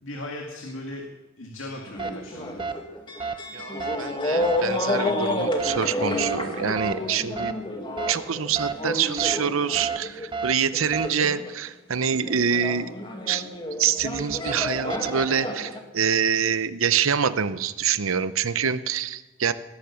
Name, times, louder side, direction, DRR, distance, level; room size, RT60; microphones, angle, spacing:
voice 1, 0.0-1.1 1.4-2.7, left 1 dB, 70° left, 1 dB, 2.1 m, -37 dB
sound 1, 1.9-10.3 10.7-11.7 12.0-15.8, left 1 dB, 20° left, 1.8 m, -30 dB
sound 2, 2.0-2.1 2.6-2.7 3.2-3.3 3.8-4.0 4.4-4.6 5.6-5.8 6.2-6.4 6.8-6.9 7.4-7.5 8.0-8.1 8.6-8.7 9.2-9.4 9.7-10.0 10.3-10.5 10.9-11.1 13.9-15.3, right 5 dB, 25° right, 0.8 m, -30 dB
voice 2, 3.5-7.5 8.1-12.9 13.3-13.4 13.8-19.5, right 7 dB, 80° right, 14 dB, 0.8 m, -26 dB
19.0 x 10.5 x 7.1 m, 1.2 s
head